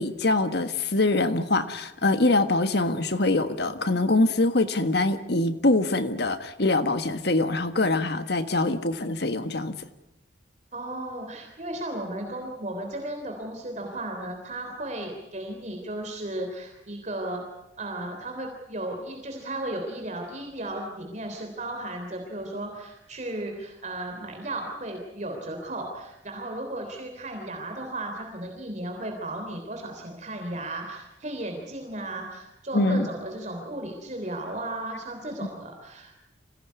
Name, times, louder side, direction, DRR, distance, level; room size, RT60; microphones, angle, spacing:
voice 1, 0.0-9.7 32.7-33.1, left 2 dB, 60° left, 10 dB, 1.6 m, -24 dB
voice 2, 10.7-17.4 17.8-36.1, right 1 dB, 40° right, 3 dB, 3.4 m, -35 dB
26.0 x 17.5 x 9.6 m, 0.91 s
head